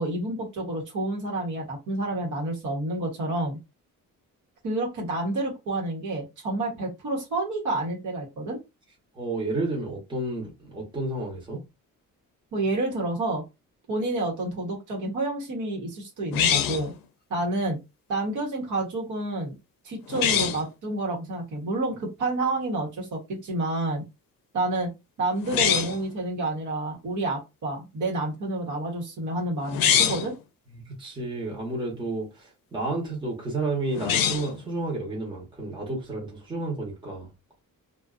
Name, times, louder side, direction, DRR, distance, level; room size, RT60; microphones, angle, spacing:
voice 1, 0.0-3.6 4.6-8.6 12.5-13.4 13.9-16.9 17.3-17.8 18.1-19.5 19.8-24.0 24.5-24.9 25.2-30.3, right 2 dB, 60° right, 1.1 m, -29 dB
voice 2, 9.1-11.6 30.7-37.3, right 2 dB, 15° right, 0.9 m, -31 dB
sound 1, 16.3-16.9 20.1-20.6 25.4-26.0 29.6-30.3 33.9-34.6, left 9 dB, 75° left, 0.5 m, -24 dB
2.5 x 2.3 x 2.4 m
cardioid pair, 160°, 34 cm